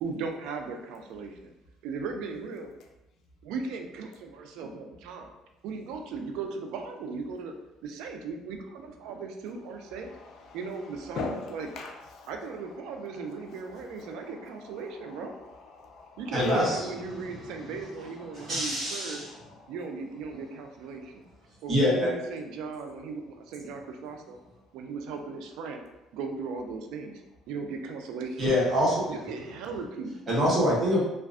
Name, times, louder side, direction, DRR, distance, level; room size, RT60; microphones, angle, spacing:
voice 1, 0.0-1.5 1.8-2.7 3.4-5.3 5.6-7.5 7.8-10.1 10.5-11.7 12.3-15.4 16.2-19.2 19.7-21.3 21.6-24.4 24.7-25.8 26.1-27.2 27.5-28.5 29.1-30.2, right 4 dB, 80° right, 4 dB, 0.3 m, -37 dB
voice 2, 10.2-10.6 11.2-12.3 14.1-14.3 15.8-16.7, left 3 dB, 65° left, 2 dB, 0.4 m, -37 dB
voice 3, 16.3-16.8 18.3-19.3 21.7-22.1 28.4-29.1 30.3-31.0, equal, 35° right, -6 dB, 1.0 m, -25 dB
2.4 x 2.2 x 2.3 m, 0.95 s
cardioid pair, 115°, 0 cm